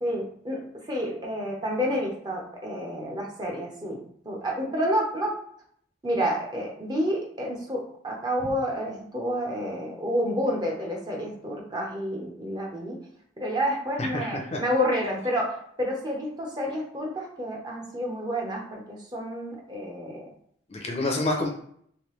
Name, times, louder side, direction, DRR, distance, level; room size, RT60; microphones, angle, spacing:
voice 1, 0.0-0.6 0.9-5.3 6.0-13.0 13.4-20.3, equal, 20° right, -1 dB, 0.7 m, -29 dB
voice 2, 14.0-14.6 20.7-21.5, left 2 dB, 30° left, 1 dB, 0.5 m, -28 dB
3.2 x 2.7 x 3.1 m, 0.64 s
head